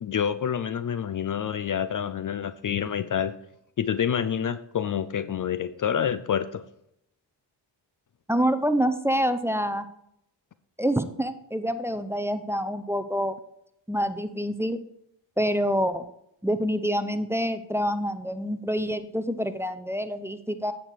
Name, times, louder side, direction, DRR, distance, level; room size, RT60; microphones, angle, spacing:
voice 1, 0.0-3.3 3.8-6.6, left 8 dB, 45° left, 14 dB, 0.5 m, -27 dB
voice 2, 8.3-9.9 10.8-13.4 13.9-14.8 15.4-16.1 16.4-20.7, equal, 5° right, 11 dB, 0.7 m, -26 dB
8.6 x 6.1 x 4.7 m, 0.75 s
cardioid pair, 55°, 46 cm